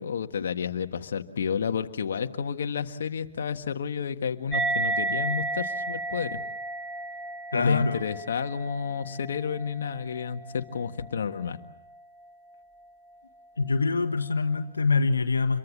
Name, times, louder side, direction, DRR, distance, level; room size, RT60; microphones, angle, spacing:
voice 1, 0.0-6.4 7.5-11.6, left 6 dB, 60° left, 6 dB, 1.6 m, -31 dB
sound 1, 4.5-11.4, right 2 dB, ahead, 1.2 m, -33 dB
voice 2, 7.5-8.0 13.6-15.6, left 4 dB, 85° left, 8 dB, 1.3 m, -24 dB
27.0 x 23.0 x 7.4 m, 0.92 s
hypercardioid pair, 140°, 0 cm